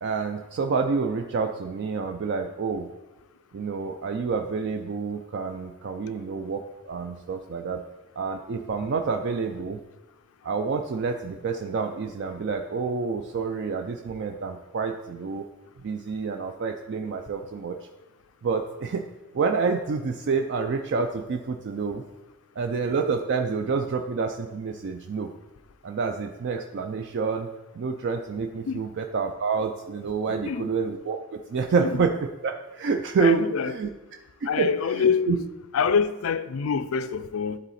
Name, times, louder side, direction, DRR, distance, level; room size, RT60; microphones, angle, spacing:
voice 1, 0.0-2.9 3.5-7.8 8.2-9.8 10.4-15.4 15.8-17.8 18.4-19.0 19.3-22.0 22.6-25.3 25.8-27.5 27.7-32.1 32.4-33.9 34.4-35.4, right 5 dB, 55° right, 0.4 m, -28 dB
voice 2, 30.3-30.7 31.8-32.0 33.2-33.7 34.5-35.4 35.7-37.6, left 6 dB, 65° left, 0.4 m, -26 dB
11.0 x 3.9 x 4.1 m
head